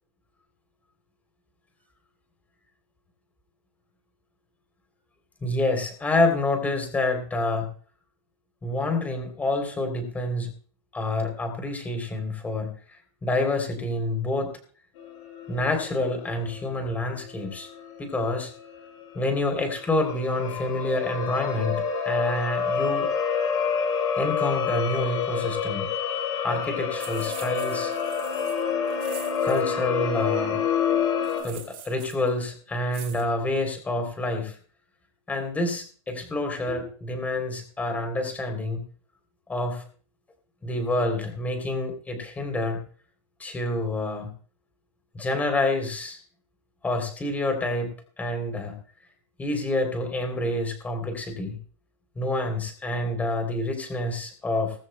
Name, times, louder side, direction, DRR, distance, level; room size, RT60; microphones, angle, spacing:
voice 1, 5.4-7.7 8.6-10.5 10.9-12.7 13.2-14.5 15.5-17.7 18.0-18.5 19.1-23.1 24.2-25.9 26.4-27.9 29.4-30.6 31.4-34.6 35.3-38.8 39.5-39.8 40.6-42.8 43.4-44.3 45.1-46.2 46.8-48.7 49.4-51.6 52.1-54.7, left 2 dB, 10° left, 5 dB, 3.2 m, -27 dB
sound 1, 15.0-31.4, left 6 dB, 55° left, 5.9 m, -28 dB
sound 2, 27.0-29.6 31.2-32.3 32.9-33.2, right 10 dB, 30° right, 4.5 m, -44 dB
19.5 x 15.5 x 2.2 m, 0.43 s
supercardioid pair, 160°, 17 cm